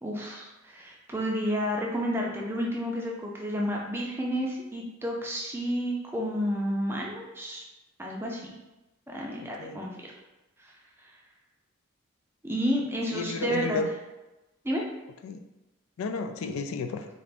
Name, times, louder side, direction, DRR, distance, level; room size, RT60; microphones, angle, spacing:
voice 1, 0.0-7.6 8.0-8.5 9.1-10.1 10.6-10.7 12.4-13.8 14.6-14.8, equal, 10° right, -2 dB, 0.4 m, -31 dB
voice 2, 9.4-9.8 13.1-13.9 15.2-15.4 16.0-17.1, left 4 dB, 80° left, 6 dB, 0.3 m, -32 dB
3.9 x 2.4 x 3.4 m, 1.0 s
head